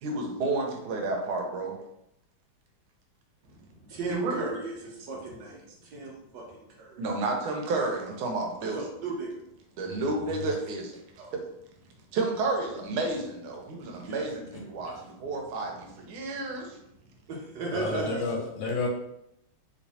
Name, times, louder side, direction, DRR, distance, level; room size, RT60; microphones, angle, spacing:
voice 1, 0.0-1.8 4.1-4.5 7.0-8.8 9.8-11.0 12.1-16.8, right 3 dB, 85° right, 1.5 m, -31 dB
voice 2, 3.4-7.0 8.6-9.4 11.2-11.3 13.7-14.3 17.3-18.4, right 3 dB, 70° right, 1.1 m, -36 dB
voice 3, 17.7-18.9, left 4 dB, 75° left, 1.4 m, -32 dB
3.2 x 3.1 x 2.7 m
omnidirectional pair, 2.3 m